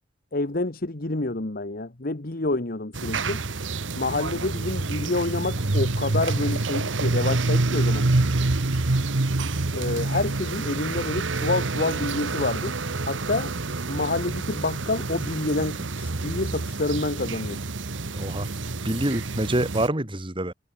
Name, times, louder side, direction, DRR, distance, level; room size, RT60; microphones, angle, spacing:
voice 1, 0.3-3.4 4.0-8.1 9.7-12.7 13.0-13.5 13.9-17.6, left 2 dB, 50° left, 1.4 m, -28 dB
sound 1, 2.9-19.9, right 2 dB, 85° right, 1.3 m, -27 dB
voice 2, 18.1-18.5 18.8-20.5, right 1 dB, 25° right, 3.0 m, -26 dB
head